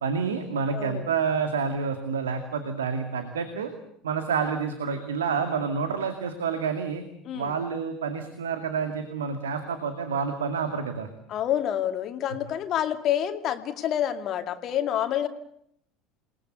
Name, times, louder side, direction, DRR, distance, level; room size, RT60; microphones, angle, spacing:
voice 1, 0.0-3.7 4.0-7.0 7.3-11.1, right 6 dB, 75° right, 8 dB, 2.3 m, -28 dB
voice 2, 0.7-1.1 7.3-7.5 11.3-15.3, left 10 dB, 45° left, 8 dB, 2.3 m, -28 dB
28.0 x 20.0 x 8.1 m, 0.71 s
figure-of-eight pair, 70°, 0 cm